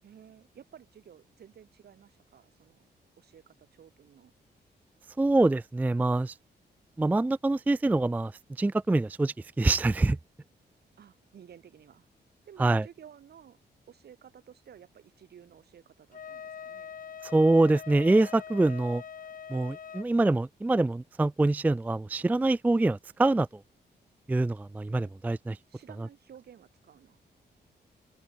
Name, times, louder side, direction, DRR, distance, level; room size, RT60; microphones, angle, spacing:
voice 1, 0.0-2.9 3.2-4.3 11.0-12.1 12.5-13.6 13.9-16.9 25.7-27.2, right 9 dB, 65° right, 5.7 m, -53 dB
voice 2, 5.2-6.3 7.0-8.3 8.6-10.2 12.6-12.9 17.2-19.0 19.5-23.5 24.3-25.6, right 2 dB, 10° right, 0.4 m, -25 dB
Wind instrument woodwind instrument, 16.1-20.1, left 7 dB, 50° left, 3.1 m, -43 dB
open air
wide cardioid pair, 160°, 18 cm